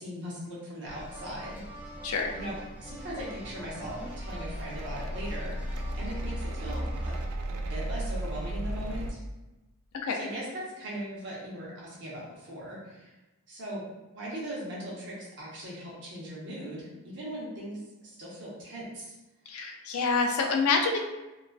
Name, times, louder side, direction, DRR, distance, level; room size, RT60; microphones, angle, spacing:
voice 1, 0.0-1.6 2.3-5.6 6.0-7.2 7.5-9.2 10.1-13.1 13.5-13.8 14.1-19.1, right 1 dB, 55° right, -6 dB, 0.8 m, -39 dB
sound 1, 0.9-7.3, equal, 5° right, 0.4 m, -41 dB
sound 2, 2.1-9.1, right 1 dB, 90° right, 0.3 m, -36 dB
voice 2, 19.5-21.0, left 4 dB, 80° left, 3 dB, 0.4 m, -27 dB
2.3 x 2.3 x 2.2 m, 1.0 s
head